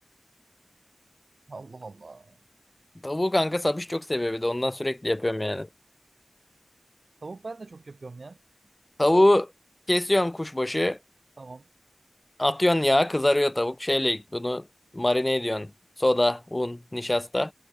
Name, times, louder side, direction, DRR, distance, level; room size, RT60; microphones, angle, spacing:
voice 1, 1.5-2.4 7.2-8.4 9.1-9.3 11.4-11.7, right 3 dB, 70° right, 7.0 m, -41 dB
voice 2, 3.0-5.7 9.0-9.4 9.9-11.0 12.4-14.7 14.9-15.7 16.0-17.5, left 1 dB, 25° left, 0.6 m, -24 dB
wide cardioid pair, 60°, 0 cm